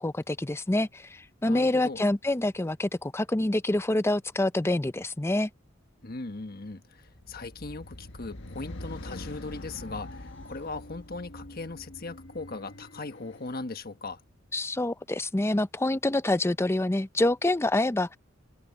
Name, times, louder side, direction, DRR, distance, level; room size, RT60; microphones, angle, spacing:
voice 1, 0.0-5.5 14.5-18.2, left 1 dB, 15° left, 0.5 m, -26 dB
voice 2, 1.5-2.0 6.0-14.2, left 3 dB, 50° left, 1.4 m, -39 dB
sound 1, 7.0-13.5, left 1 dB, 65° left, 1.6 m, -44 dB
head